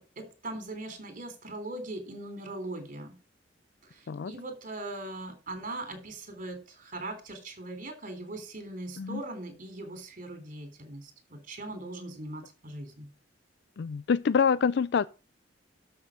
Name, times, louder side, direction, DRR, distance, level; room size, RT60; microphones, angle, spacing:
voice 1, 0.0-3.1 3.8-13.1, right 2 dB, 45° right, 3.3 m, -40 dB
voice 2, 13.8-15.1, left 6 dB, 60° left, 0.4 m, -26 dB
12.5 x 6.4 x 4.9 m
head